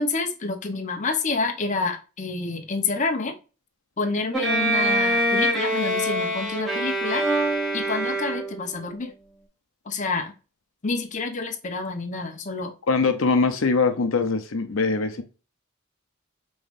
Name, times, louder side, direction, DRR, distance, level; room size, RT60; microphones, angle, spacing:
voice 1, 0.0-3.3 4.0-7.2 7.7-9.1 9.9-10.3 10.8-12.7, left 3 dB, 35° left, 0.7 m, -28 dB
Bowed string instrument, 4.3-8.8, right 1 dB, ahead, 1.2 m, -24 dB
voice 2, 12.9-15.2, left 4 dB, 70° left, 0.7 m, -22 dB
5.0 x 3.1 x 2.5 m
head